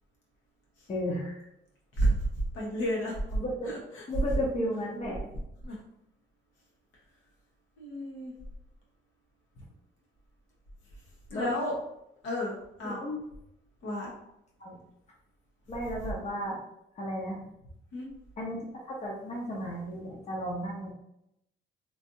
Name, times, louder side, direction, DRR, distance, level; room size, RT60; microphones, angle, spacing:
voice 1, 0.9-1.4 3.3-3.7 4.1-5.2 9.6-9.7 11.3-11.5 12.8-13.2 14.6-14.8 15.7-16.6 16.9-17.4 18.4-20.9, equal, 35° left, -2 dB, 0.8 m, -34 dB
voice 2, 1.9-3.2 3.6-4.0 5.6-5.8 7.8-8.3 11.3-11.8 12.2-13.0 13.8-14.1 17.9-18.1, right 1 dB, 80° left, -4 dB, 1.2 m, -31 dB
3.2 x 2.6 x 2.7 m, 0.82 s
cardioid pair, 90°, 20 cm